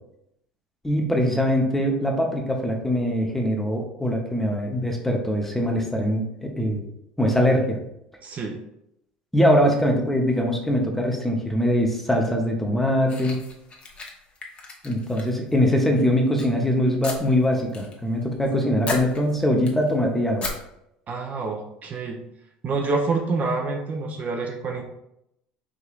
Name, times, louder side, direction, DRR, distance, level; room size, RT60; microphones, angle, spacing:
voice 1, 0.8-6.8 7.2-7.8 9.3-13.4 14.8-20.5, equal, 5° left, 1 dB, 0.8 m, -22 dB
voice 2, 8.2-8.6 21.1-22.2 22.6-24.8, right 3 dB, 40° right, 2 dB, 0.7 m, -27 dB
sound 1, 13.1-15.6 15.9-16.5 17.0-17.9 18.2-18.5 18.8-19.9 20.4-20.5, left 3 dB, 30° left, 0.9 m, -35 dB
4.9 x 2.8 x 2.4 m, 0.81 s
hypercardioid pair, 75°, 4 cm